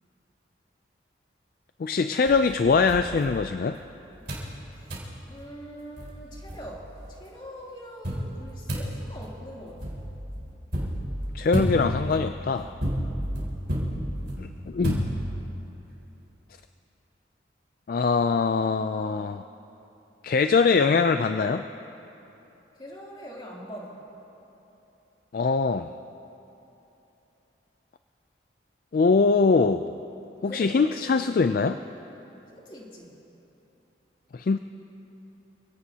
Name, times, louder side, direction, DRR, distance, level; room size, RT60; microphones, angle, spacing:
voice 1, 1.8-3.8 11.3-12.7 14.4-15.1 17.9-19.4 20.2-21.7 25.3-25.9 28.9-29.9 30.4-31.8 34.3-34.6, left 4 dB, 50° left, 9 dB, 0.3 m, -23 dB
sound 1, 2.3-3.8 4.3-4.5 4.9-5.1 5.7-5.8 6.0-7.1 8.0-15.6, equal, 60° right, 4.5 m, -31 dB
voice 2, 5.3-9.9 12.9-13.1 22.7-24.0 30.4-30.9 32.5-33.2, equal, 25° left, -5 dB, 2.9 m, -43 dB
28.0 x 17.5 x 2.8 m, 3.0 s
head